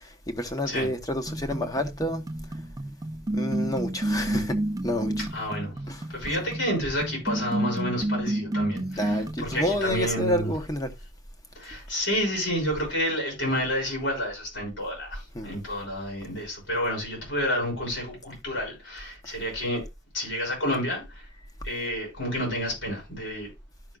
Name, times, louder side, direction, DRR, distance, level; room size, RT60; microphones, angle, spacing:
voice 1, 0.0-2.2 2.5-2.6 3.3-4.6 4.8-5.3 5.9-6.1 9.0-10.9 15.3-15.5 21.3-21.5, left 1 dB, 20° left, 0.9 m, -29 dB
sound 1, 1.3-9.8, right 1 dB, 20° right, 0.3 m, -30 dB
voice 2, 5.3-5.7 6.1-10.5 11.5-19.9 20.1-21.2 21.6-23.5, equal, 85° left, 6.3 m, -30 dB
13.5 x 5.7 x 2.4 m
head